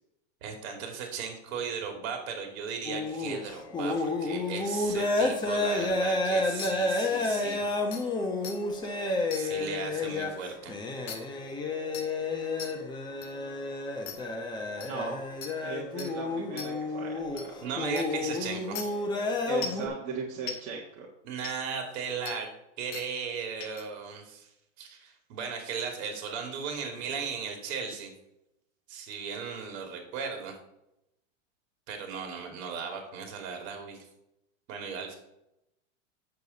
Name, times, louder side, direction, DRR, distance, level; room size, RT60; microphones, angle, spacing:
voice 1, 0.4-7.8 8.9-10.7 17.6-19.0 21.2-22.5 22.8-24.5 24.8-28.1 28.9-30.5 31.9-34.0 34.7-35.1, right 6 dB, 55° right, 3 dB, 2.6 m, -37 dB
sound 1, 2.9-19.9, left 2 dB, 10° left, 0.8 m, -31 dB
sound 2, 6.6-6.7 7.4-7.5 7.9-8.0 8.4-8.6 9.3-9.4 11.1-11.2 11.9-12.1 12.6-12.7 13.2-13.3 14.1-14.2 14.8-14.9 15.4-15.5 16.0-16.1 16.6-16.7 17.4-17.5 18.0-18.1 18.8-18.9 19.6-19.8 20.5-20.6 21.4-21.5 22.3-22.4 22.9-23.1 23.6-23.8, left 6 dB, 55° left, 1.7 m, -38 dB
voice 2, 12.7-13.6 14.8-15.2 15.6-17.5 19.5-21.1, right 5 dB, 35° right, -3 dB, 1.6 m, -38 dB
8.3 x 6.9 x 4.1 m, 0.85 s
supercardioid pair, 155°, 39 cm